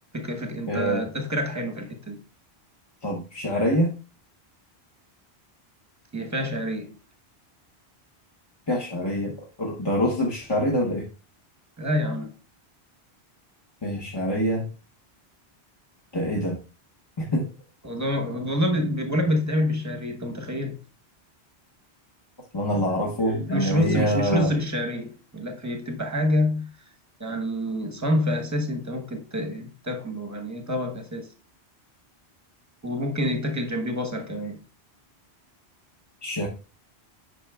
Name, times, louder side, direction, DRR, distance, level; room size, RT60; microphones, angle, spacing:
voice 1, 0.1-2.2 6.1-7.0 11.8-12.3 17.8-20.8 23.5-26.7 27.2-31.3 32.8-34.6, equal, 15° right, 0.9 m, -27 dB
voice 2, 0.7-1.1 3.0-3.9 8.7-11.1 13.8-14.6 16.1-16.6 17.2-17.5 22.5-24.5 36.2-36.5, equal, 25° left, 0.9 m, -25 dB
9.1 x 5.8 x 2.3 m
omnidirectional pair, 1.1 m